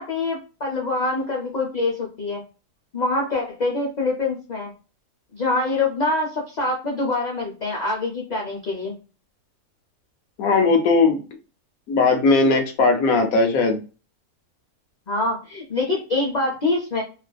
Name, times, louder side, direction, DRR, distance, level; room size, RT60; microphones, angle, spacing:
voice 1, 0.0-2.4 2.9-4.7 5.3-8.9 15.1-17.0, left 2 dB, 55° left, -2 dB, 0.4 m, -25 dB
voice 2, 10.4-11.2 11.9-13.8, left 3 dB, 80° left, 5 dB, 1.1 m, -18 dB
2.6 x 2.4 x 2.2 m, 0.34 s
omnidirectional pair, 1.5 m